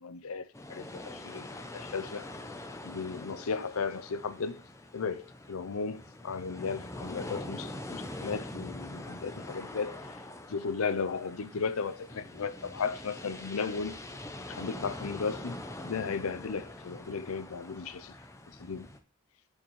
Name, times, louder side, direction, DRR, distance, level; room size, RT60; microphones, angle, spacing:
voice 1, 0.0-1.5 1.7-2.3 2.8-4.6 4.9-10.2 10.5-14.0 14.5-18.1 18.6-18.9, left 5 dB, 70° left, 0.6 m, -35 dB
sound 1, 0.5-19.0, left 1 dB, 15° left, 0.6 m, -44 dB
6.5 x 5.8 x 3.1 m
head